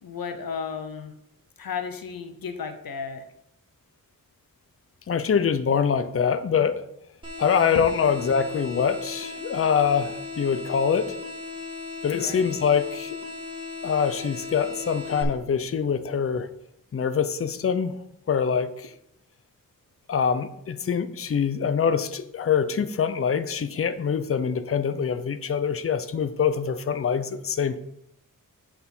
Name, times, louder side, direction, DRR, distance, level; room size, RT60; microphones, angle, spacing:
voice 1, 0.0-1.1 1.6-3.2 7.7-7.8 12.1-12.6, left 6 dB, 85° left, 7 dB, 0.8 m, -34 dB
voice 2, 5.1-6.8 7.4-11.1 12.0-13.2 13.8-16.5 16.9-18.0 18.3-18.9 20.1-27.8, left 7 dB, 40° left, 11 dB, 0.5 m, -24 dB
sound 1, 7.2-15.2, left 4 dB, 15° right, 2.0 m, -37 dB
8.1 x 4.3 x 5.3 m, 0.78 s
wide cardioid pair, 125°, 34 cm